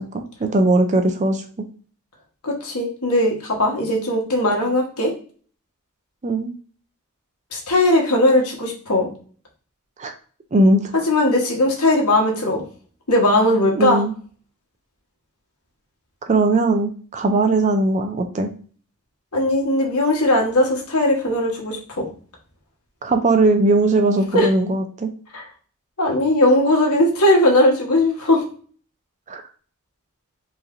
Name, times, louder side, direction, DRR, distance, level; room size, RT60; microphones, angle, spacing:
voice 1, 0.0-1.4 6.2-6.5 10.0-10.1 10.5-10.9 13.8-14.1 16.2-18.5 23.0-25.1 29.3-29.4, right 2 dB, 35° right, 6 dB, 0.4 m, -19 dB
voice 2, 2.4-5.1 7.5-9.1 11.1-12.6 13.1-14.0 19.3-22.0 24.3-24.5 25.3-25.5 26.0-28.4, left 1 dB, 75° left, -1 dB, 1.4 m, -18 dB
4.8 x 3.2 x 2.6 m, 0.42 s
head